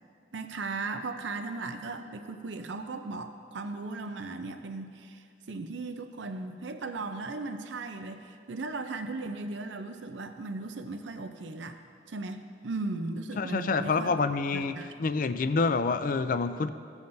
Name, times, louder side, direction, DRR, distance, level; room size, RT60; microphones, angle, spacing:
voice 1, 0.3-11.8 12.1-14.1 14.5-14.9, right 3 dB, 75° right, 7 dB, 0.6 m, -37 dB
voice 2, 13.4-16.7, left 4 dB, 45° left, 11 dB, 0.4 m, -27 dB
16.5 x 7.2 x 2.6 m, 2.4 s
head